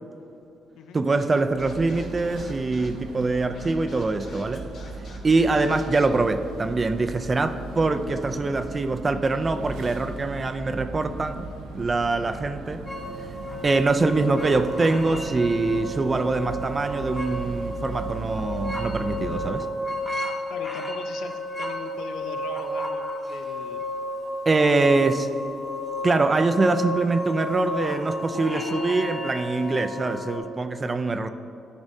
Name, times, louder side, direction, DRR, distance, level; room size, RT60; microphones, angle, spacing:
voice 1, 0.9-4.7 5.2-11.5 11.7-12.8 13.6-19.7 24.5-25.3 26.0-31.3, right 3 dB, 30° right, 8 dB, 0.3 m, -24 dB
Scratching (performance technique), 1.2-6.1, left 3 dB, 65° left, 1.2 m, -48 dB
sound 1, 1.5-19.5, right 2 dB, 90° right, 0.6 m, -38 dB
sound 2, 12.9-30.4, left 1 dB, 15° left, 1.1 m, -32 dB
voice 2, 20.5-23.8 24.6-25.0, left 6 dB, 85° left, 7 dB, 0.5 m, -40 dB
10.5 x 5.1 x 2.7 m, 2.7 s
cardioid pair, 90°, 0 cm